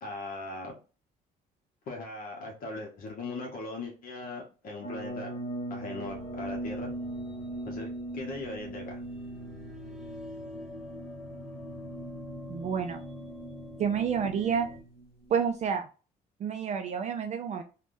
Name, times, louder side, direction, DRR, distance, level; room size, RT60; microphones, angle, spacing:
voice 1, 0.0-0.7 1.9-5.3 5.7-6.9 7.7-7.9 8.1-9.0, left 2 dB, 55° left, 0 dB, 0.9 m, -39 dB
sound 1, 4.8-15.8, right 1 dB, 40° left, 1.6 m, -41 dB
sound 2, 6.0-14.8, left 2 dB, ahead, 0.9 m, -46 dB
voice 2, 12.5-13.0 13.8-14.7 15.3-15.9 16.4-17.6, right 7 dB, 45° right, 6 dB, 0.4 m, -29 dB
3.3 x 2.2 x 2.5 m, 0.35 s
cardioid pair, 110°, 17 cm